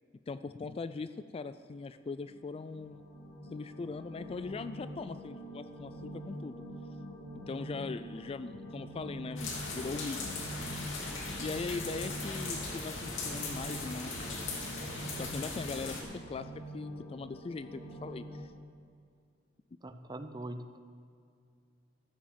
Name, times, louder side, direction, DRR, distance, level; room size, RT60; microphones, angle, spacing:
voice 1, 0.3-3.0 3.5-6.6 7.3-10.2 10.6-10.7 11.4-14.2 15.2-18.5, left 4 dB, 30° left, 13 dB, 0.3 m, -40 dB
sound 1, 2.1-18.4, equal, 50° left, 2.9 m, -45 dB
sound 2, 9.4-16.0, left 3 dB, 85° left, 2.5 m, -39 dB
voice 2, 19.8-20.8, right 1 dB, 20° right, 9 dB, 0.7 m, -42 dB
14.5 x 7.4 x 7.4 m, 2.3 s
head